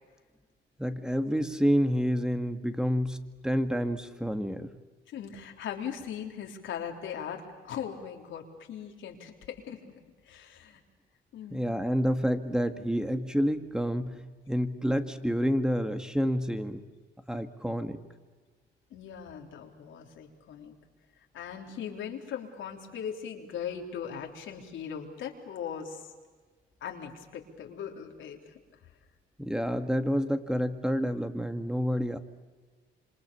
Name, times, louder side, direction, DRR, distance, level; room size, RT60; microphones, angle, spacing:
voice 1, 0.8-3.2 3.4-4.7 11.5-14.2 14.5-16.8 17.3-18.0 29.4-32.2, equal, 5° right, 8 dB, 2.0 m, -28 dB
voice 2, 5.1-9.8 10.2-10.8 11.3-11.7 18.9-20.8 21.3-26.1 26.8-28.5, left 8 dB, 80° left, 2 dB, 3.6 m, -39 dB
27.0 x 26.5 x 7.0 m, 1.4 s
cardioid pair, 90°, 20 cm